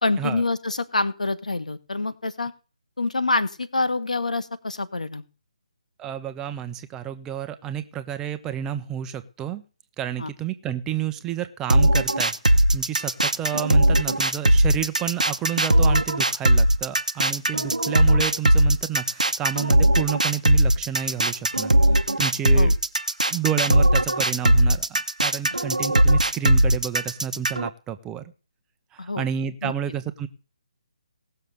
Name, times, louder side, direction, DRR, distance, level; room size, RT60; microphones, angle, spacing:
voice 1, 0.0-2.5 3.0-5.2 10.2-10.3 22.5-22.7 29.0-29.3 29.6-29.7, left 3 dB, 75° left, 12 dB, 1.6 m, -26 dB
voice 2, 6.0-9.6 10.0-21.7 22.2-22.7 23.3-28.3 28.9-30.3, right 10 dB, 15° right, 10 dB, 0.9 m, -30 dB
sound 1, 11.7-27.7, right 1 dB, 85° right, 1.1 m, -19 dB
18.5 x 6.7 x 6.7 m, 0.35 s
figure-of-eight pair, 145°, 4 cm